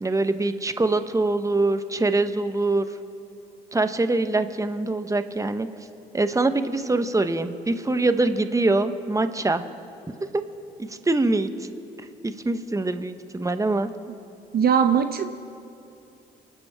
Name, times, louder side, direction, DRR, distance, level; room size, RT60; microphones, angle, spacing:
voice 1, 0.0-2.9 3.7-5.7 6.1-9.6 10.3-10.4 10.8-11.5 12.2-13.9, right 2 dB, 15° right, 10 dB, 1.1 m, -24 dB
voice 2, 14.5-15.3, right 7 dB, 50° right, 8 dB, 0.8 m, -20 dB
29.5 x 12.0 x 3.6 m, 2.7 s
hypercardioid pair, 50°, 20 cm